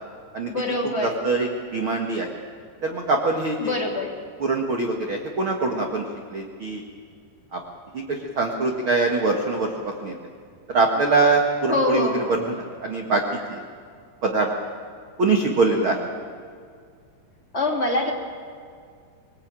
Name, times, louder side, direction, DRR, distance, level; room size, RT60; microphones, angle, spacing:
voice 1, 0.5-1.2 3.6-4.2 11.7-12.4 17.5-18.1, left 2 dB, 20° left, -1 dB, 2.0 m, -25 dB
voice 2, 1.0-2.3 2.8-3.7 4.4-6.0 6.3-6.8 7.5-7.6 7.9-9.7 10.0-10.1 10.7-13.6 14.2-14.5 15.2-16.0, right 3 dB, 75° right, 1 dB, 1.1 m, -23 dB
24.0 x 19.5 x 8.9 m, 2.2 s
omnidirectional pair, 5.3 m